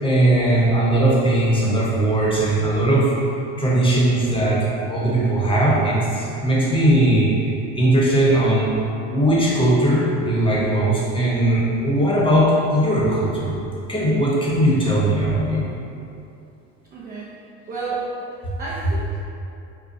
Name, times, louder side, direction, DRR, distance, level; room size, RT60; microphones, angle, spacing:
voice 1, 0.0-3.1 3.6-4.6 4.9-7.3 7.8-8.7 9.1-13.6 13.9-15.7 18.4-18.5, right 1 dB, 15° left, -6 dB, 1.0 m, -19 dB
voice 2, 16.9-17.3 17.7-18.1 18.6-19.2, right 4 dB, 30° right, -7 dB, 0.6 m, -30 dB
5.2 x 2.2 x 2.7 m, 2.7 s
supercardioid pair, 95°, 33 cm